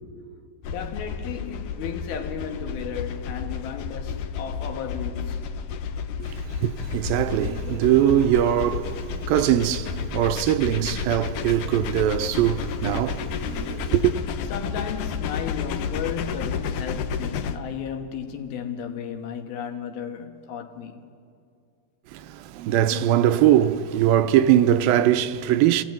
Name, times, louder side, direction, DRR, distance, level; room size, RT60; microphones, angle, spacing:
sound 1, 0.6-17.6, left 6 dB, 70° left, 2.1 m, -31 dB
voice 1, 0.7-5.5 14.5-21.0, left 8 dB, 85° left, 3.4 m, -34 dB
voice 2, 6.2-14.2 22.1-25.8, right 11 dB, 80° right, 2.5 m, -21 dB
30.0 x 15.5 x 9.2 m
omnidirectional pair, 4.2 m